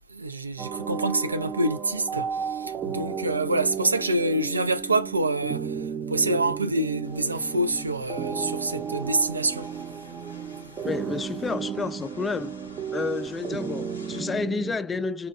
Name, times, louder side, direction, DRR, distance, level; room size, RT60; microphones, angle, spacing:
voice 1, 0.0-9.7, right 2 dB, 90° right, 0.4 m, -26 dB
sound 1, 0.6-14.8, right 7 dB, 35° right, 0.6 m, -34 dB
sound 2, 7.0-14.2, left 2 dB, 90° left, 0.6 m, -49 dB
voice 2, 10.8-12.5 12.9-15.3, left 4 dB, 20° left, 0.3 m, -30 dB
4.3 x 2.0 x 2.4 m
figure-of-eight pair, 80°, 0 cm